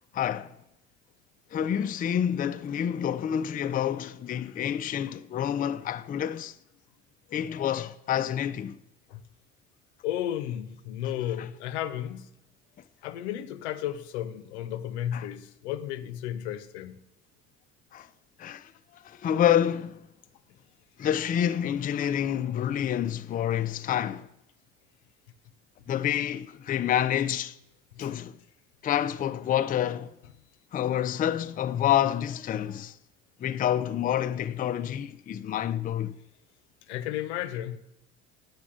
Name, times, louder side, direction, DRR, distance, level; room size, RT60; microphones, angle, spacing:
voice 1, 0.1-0.5 1.5-6.5 7.3-8.8 11.2-11.3 15.1-15.3 17.9-18.1 18.4-18.7 19.0-20.0 21.0-24.3 25.9-27.5 28.0-28.3 28.8-30.1 30.7-32.9 33.4-36.2, left 10 dB, 25° left, 0.4 m, -28 dB
voice 2, 10.0-12.3 13.0-17.0 28.0-28.1 36.9-37.8, left 11 dB, 85° left, 0.6 m, -33 dB
8.4 x 6.3 x 4.9 m
hypercardioid pair, 75°, 32 cm